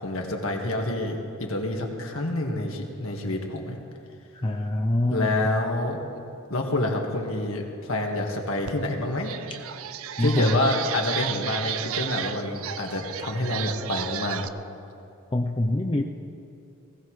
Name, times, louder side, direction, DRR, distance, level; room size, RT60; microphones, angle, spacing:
voice 1, 0.0-3.8 5.1-6.2 6.5-9.3 10.2-14.4, left 2 dB, 70° left, 1 dB, 1.7 m, -28 dB
voice 2, 4.4-5.5 10.2-10.7 15.3-16.0, left 1 dB, 25° left, 2 dB, 0.5 m, -24 dB
sound 1, 8.7-8.8 9.1-14.5, right 10 dB, 75° right, 0.4 m, -33 dB
20.0 x 16.5 x 3.2 m, 2.6 s
head